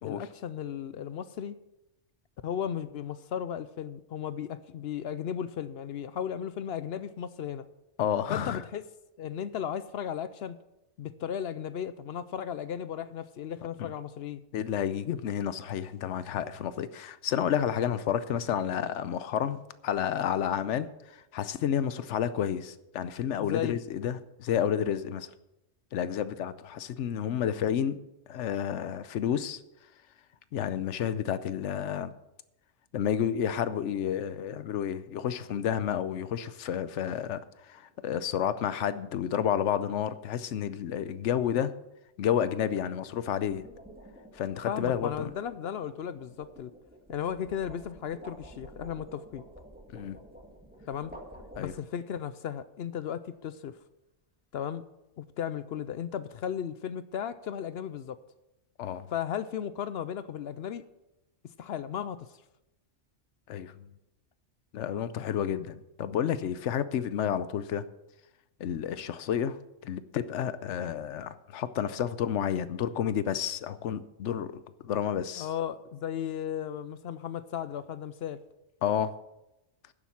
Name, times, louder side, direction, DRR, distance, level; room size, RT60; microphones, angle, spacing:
voice 1, 0.0-1.6 2.4-7.7 8.3-8.8 9.2-10.6 11.0-14.4 23.4-23.8 44.7-46.7 47.1-49.4 50.9-51.1 51.6-53.8 54.5-54.8 55.2-58.2 59.1-60.8 61.6-62.3 75.4-78.4, left 9 dB, 65° left, 14 dB, 0.8 m, -35 dB
voice 2, 8.0-8.6 13.8-13.9 14.5-25.3 25.9-28.0 28.3-29.6 30.5-32.1 32.9-37.4 37.7-41.7 42.2-43.7 44.3-45.3 49.9-50.2 51.6-51.7 58.8-59.1 63.5-63.9 64.7-67.9 68.6-69.6 69.8-75.5 78.8-79.2, left 9 dB, 85° left, 14 dB, 1.0 m, -30 dB
sound 1, 37.7-38.0 43.2-52.1, equal, 10° right, 1.8 m, -50 dB
10.5 x 7.3 x 7.1 m, 0.93 s
omnidirectional pair, 1.2 m